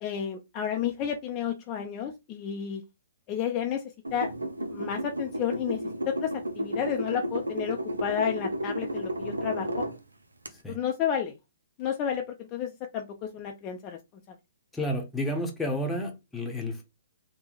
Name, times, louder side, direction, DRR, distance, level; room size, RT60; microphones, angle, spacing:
voice 1, 0.0-2.8 3.3-4.3 4.7-9.9 10.7-11.4 11.8-14.0 14.3-14.4, left 8 dB, 30° left, 0.5 m, -31 dB
sound 1, 4.0-10.0 10.4-10.5, right 1 dB, 90° right, 0.6 m, -33 dB
voice 2, 14.7-16.8, left 1 dB, 10° left, 0.9 m, -31 dB
3.4 x 2.2 x 3.8 m
hypercardioid pair, 130°, 0 cm